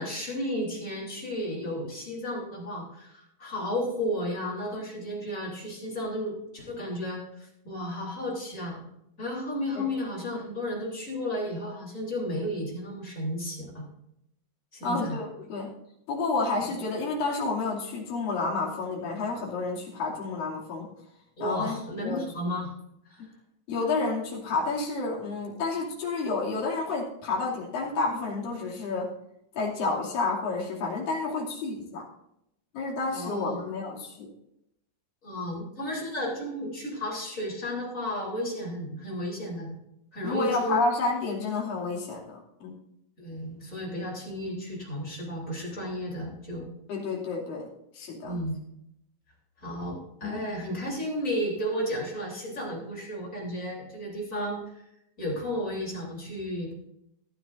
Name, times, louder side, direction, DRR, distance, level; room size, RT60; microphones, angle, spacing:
voice 1, 0.0-8.8 9.2-13.8 14.7-15.2 16.6-16.8 21.4-22.7 23.1-23.2 33.1-33.6 35.2-39.7 40.1-40.8 43.2-46.7 48.2-48.6 49.6-54.8 55.2-56.7, equal, 20° left, -3 dB, 3.1 m, -33 dB
voice 2, 14.8-15.7 16.1-20.9 21.4-22.2 23.7-29.1 29.5-32.1 32.7-34.3 40.2-42.7 46.9-47.7 47.9-48.4 50.2-50.5, left 3 dB, 55° left, -3 dB, 4.1 m, -30 dB
15.5 x 12.0 x 2.6 m, 0.79 s
omnidirectional pair, 5.1 m